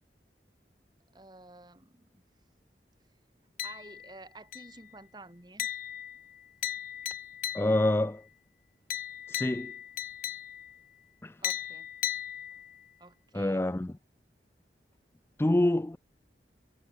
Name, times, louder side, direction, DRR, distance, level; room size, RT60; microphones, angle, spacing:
voice 1, 1.1-2.2 3.6-5.7 11.4-11.9 13.0-13.7, right 2 dB, 25° right, 1.8 m, -51 dB
sound 1, 3.6-4.2 4.5-4.9 5.6-8.0 8.9-10.8 11.4-12.9, left 11 dB, 50° left, 0.6 m, -37 dB
voice 2, 7.5-8.2 9.3-9.7 11.2-11.3 13.3-13.9 15.4-16.0, left 1 dB, 15° left, 0.4 m, -26 dB
head